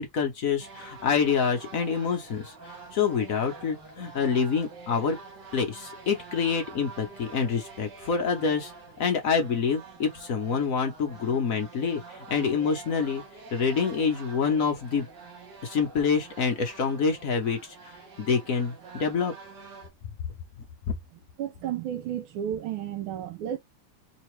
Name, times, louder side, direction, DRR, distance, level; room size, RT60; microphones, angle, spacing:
voice 1, 0.0-5.2 5.5-8.7 9.0-13.2 13.5-15.1 15.6-17.9 18.2-19.3, left 6 dB, 60° left, 0.9 m, -27 dB
sound 1, 0.6-19.9, right 4 dB, 55° right, 1.9 m, -46 dB
voice 2, 21.4-23.6, right 10 dB, 80° right, 1.4 m, -32 dB
3.9 x 2.8 x 3.1 m
omnidirectional pair, 2.4 m